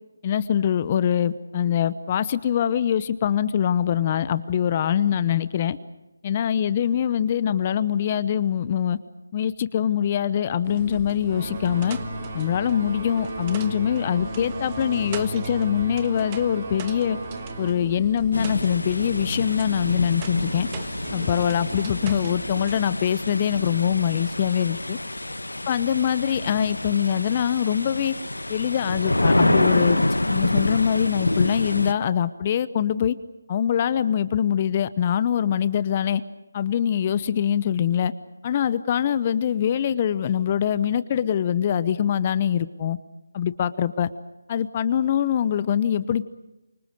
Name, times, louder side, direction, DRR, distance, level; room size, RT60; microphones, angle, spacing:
voice 1, 0.2-5.8 6.2-9.0 9.3-12.0 12.3-17.2 17.6-20.7 21.1-25.0 25.7-28.1 28.5-30.0 30.3-33.1 33.5-36.2 36.5-38.1 38.4-43.0 43.3-44.1 44.5-46.2, left 9 dB, 30° left, 15 dB, 0.9 m, -23 dB
sound 1, 10.6-22.8, right 6 dB, 25° right, 1.5 m, -39 dB
sound 2, 11.3-17.7, right 1 dB, 50° right, 5.9 m, -34 dB
sound 3, 18.3-31.9, left 1 dB, 85° left, 1.4 m, -27 dB
28.0 x 25.0 x 6.5 m, 1.0 s
figure-of-eight pair, 155°, 0 cm